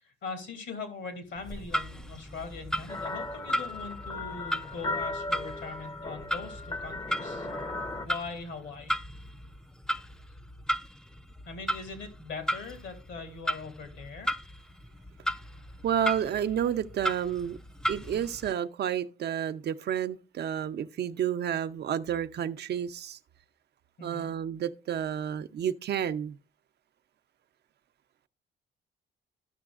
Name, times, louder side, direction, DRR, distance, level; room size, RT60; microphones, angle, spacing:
voice 1, 0.0-7.5 8.0-8.9 11.5-14.3 24.0-24.3, left 4 dB, 70° left, 2.3 m, -41 dB
Clock, 1.4-18.5, equal, 5° left, 0.3 m, -36 dB
sound 1, 2.9-8.1, left 2 dB, 20° left, 0.7 m, -36 dB
voice 2, 15.8-17.6 17.9-23.2 24.0-26.4, right 9 dB, 55° right, 0.5 m, -30 dB
13.5 x 5.9 x 2.4 m
cardioid pair, 90°, 20 cm